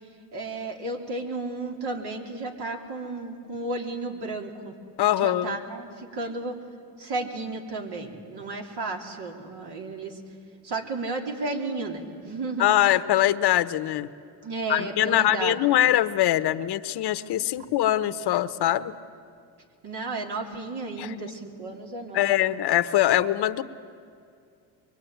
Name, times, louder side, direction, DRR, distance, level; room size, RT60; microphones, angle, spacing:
voice 1, 0.3-4.7 5.2-6.6 7.0-10.2 10.6-12.7 14.4-15.6 19.8-22.3, right 2 dB, 65° right, 2 dB, 3.6 m, -33 dB
voice 2, 5.0-5.6 12.6-14.1 14.7-18.9 21.0-21.1 22.1-23.6, left 13 dB, 65° left, 12 dB, 1.0 m, -23 dB
23.5 x 23.0 x 9.2 m, 2.4 s
cardioid pair, 85°, 42 cm